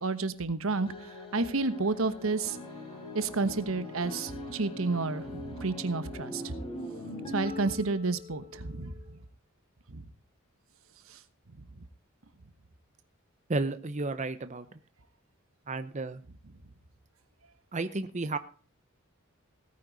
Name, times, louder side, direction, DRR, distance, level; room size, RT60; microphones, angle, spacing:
voice 1, 0.0-0.9 1.3-2.6 3.1-6.5 7.3-8.9 9.9-10.0, right 3 dB, 75° right, 13 dB, 1.1 m, -30 dB
sound 1, 0.9-9.3, left 1 dB, 25° left, 4.3 m, -42 dB
voice 2, 13.5-14.6 15.7-16.2 17.7-18.4, right 3 dB, 35° right, 11 dB, 0.7 m, -32 dB
17.5 x 9.7 x 4.0 m, 0.40 s
head